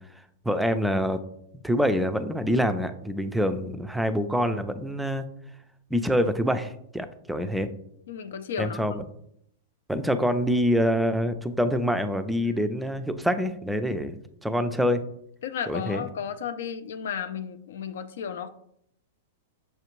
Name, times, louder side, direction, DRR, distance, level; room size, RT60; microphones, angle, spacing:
voice 1, 0.4-1.2 1.6-5.3 5.9-7.7 8.6-9.0 9.9-14.2 14.4-15.0 15.7-16.0, equal, 5° right, 10 dB, 0.3 m, -25 dB
voice 2, 8.1-8.8 12.4-13.0 13.9-14.0 15.4-18.5, left 7 dB, 70° left, 10 dB, 0.4 m, -34 dB
6.3 x 2.4 x 3.0 m, 0.72 s
hypercardioid pair, 110°, 0 cm